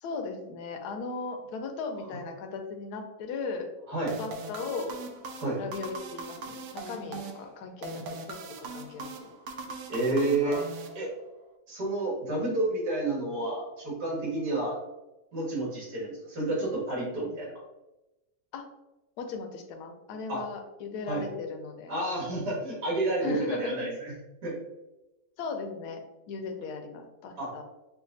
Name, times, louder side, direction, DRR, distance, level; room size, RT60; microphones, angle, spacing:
voice 1, 0.0-3.7 4.2-4.9 5.6-9.3 18.5-18.6 19.2-21.9 23.2-23.9 25.4-26.0 26.3-27.6, left 4 dB, 75° left, 4 dB, 1.2 m, -37 dB
sound 1, 4.1-11.5, right 3 dB, 90° right, 1.2 m, -41 dB
voice 2, 9.9-10.6 11.0-11.1 11.7-14.8 15.3-17.5 20.3-20.4 21.1-21.2 21.9-24.1 24.4-24.6 27.4-27.5, right 2 dB, 75° right, -5 dB, 2.2 m, -30 dB
5.6 x 2.6 x 2.6 m, 0.99 s
omnidirectional pair, 1.8 m